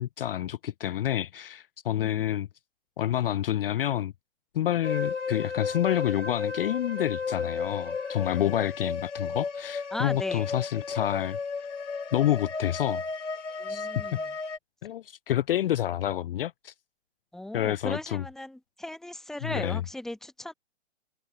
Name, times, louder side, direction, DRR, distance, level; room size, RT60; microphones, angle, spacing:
voice 1, 0.0-2.5 3.0-4.1 4.5-11.4 12.1-13.0 13.7-14.2 14.8-16.7 17.5-18.2 19.4-19.8, left 12 dB, 50° left, 0.5 m, -28 dB
voice 2, 2.0-2.3 9.9-10.5 13.5-14.3 17.3-20.5, left 1 dB, ahead, 1.1 m, -38 dB
sound 1, 4.8-14.6, left 5 dB, 75° left, 3.3 m, -33 dB
hypercardioid pair, 130°, 36 cm